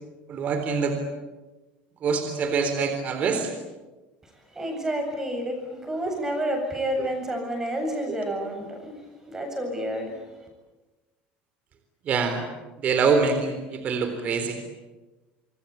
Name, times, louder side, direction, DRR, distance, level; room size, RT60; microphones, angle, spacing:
voice 1, 0.3-1.0 2.0-3.5 7.0-7.1 12.0-12.4 12.8-14.6, right 5 dB, 40° right, 7 dB, 3.9 m, -25 dB
voice 2, 4.5-10.2, right 1 dB, 15° right, 4 dB, 7.9 m, -30 dB
27.0 x 23.0 x 8.8 m, 1.2 s
cardioid pair, 155°, 4 cm